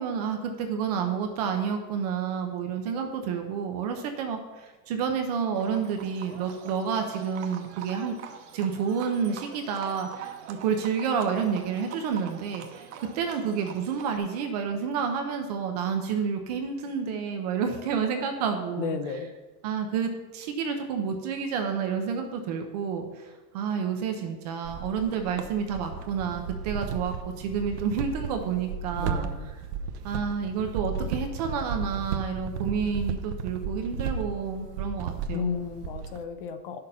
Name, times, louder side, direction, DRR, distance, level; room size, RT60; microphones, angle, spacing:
voice 1, 0.0-8.2 8.5-19.0 19.6-29.3 30.0-35.5, right 6 dB, 25° right, 4 dB, 0.6 m, -29 dB
Livestock farm animals working animals, 5.5-14.2, right 9 dB, 45° right, 1.0 m, -44 dB
voice 2, 18.8-19.3 29.0-29.5 35.3-36.8, left 7 dB, 35° left, 8 dB, 0.7 m, -33 dB
sound 1, 24.6-36.2, right 5 dB, 90° right, 1.0 m, -34 dB
10.5 x 6.7 x 5.5 m, 1.2 s
supercardioid pair, 180°, 46 cm